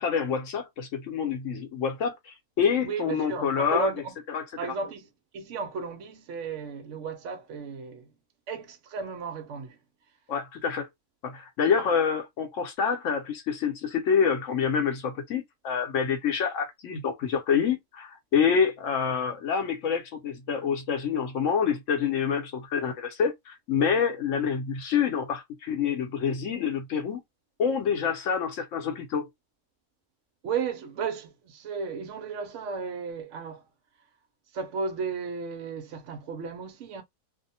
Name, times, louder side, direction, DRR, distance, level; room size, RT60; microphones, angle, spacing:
voice 1, 0.0-3.9 4.3-4.4 10.3-10.9 11.2-27.2 27.6-29.3, left 6 dB, 60° left, 1.0 m, -27 dB
voice 2, 2.8-4.1 4.6-8.1 8.5-9.8 30.4-33.6 34.5-37.0, right 5 dB, 70° right, 0.7 m, -34 dB
2.6 x 2.0 x 2.7 m
omnidirectional pair, 1.7 m